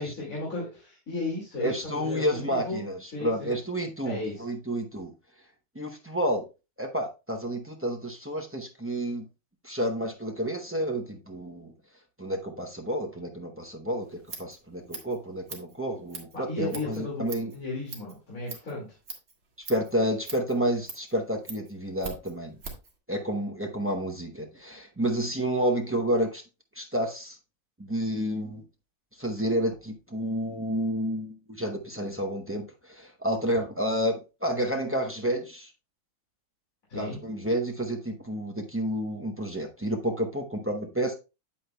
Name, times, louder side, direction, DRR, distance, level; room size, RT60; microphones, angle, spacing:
voice 1, 0.0-2.8 3.1-3.5 4.0-4.3 16.3-17.2 17.5-18.9 36.9-37.2, left 2 dB, 60° left, -5 dB, 2.7 m, -34 dB
voice 2, 1.6-5.1 5.7-6.4 6.8-9.3 9.6-11.7 12.2-17.5 19.7-22.5 23.1-26.4 26.7-27.4 27.8-28.6 29.2-35.7 36.9-41.1, equal, 15° right, 2 dB, 0.5 m, -30 dB
Scissors, 14.0-22.9, right 4 dB, 45° right, 1.7 m, -44 dB
8.5 x 8.3 x 2.2 m, 0.29 s
omnidirectional pair, 1.7 m